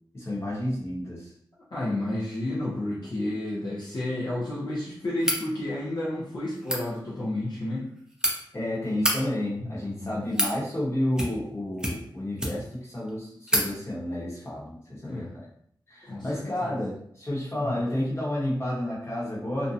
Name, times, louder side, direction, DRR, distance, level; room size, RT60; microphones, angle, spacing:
voice 1, 0.1-1.3 8.5-15.5 15.9-19.7, left 1 dB, 30° left, -7 dB, 1.1 m, -31 dB
voice 2, 1.7-7.9 9.6-10.3 15.0-15.3 16.0-16.8 17.6-17.8, left 1 dB, 55° left, -7 dB, 0.6 m, -31 dB
sound 1, 5.2-5.4 6.5-6.8 7.8-8.3 8.9-9.2 10.0-10.6 11.1-11.5 11.8-12.8 13.1-13.2 13.5-13.7, equal, 10° right, 0.5 m, -27 dB
2.6 x 2.2 x 2.6 m, 0.65 s
wide cardioid pair, 105°, 8 cm